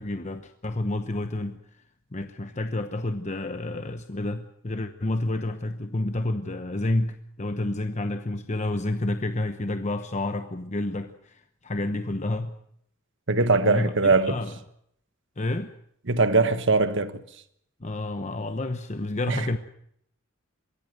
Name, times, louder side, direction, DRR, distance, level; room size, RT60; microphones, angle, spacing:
voice 1, 0.0-1.6 2.1-12.5 13.6-14.6 15.4-15.7 17.8-19.6, left 2 dB, 35° left, 1.0 m, -29 dB
voice 2, 13.3-14.4 16.1-17.1 19.3-19.4, right 3 dB, 60° right, 1.5 m, -21 dB
23.0 x 16.0 x 7.9 m
head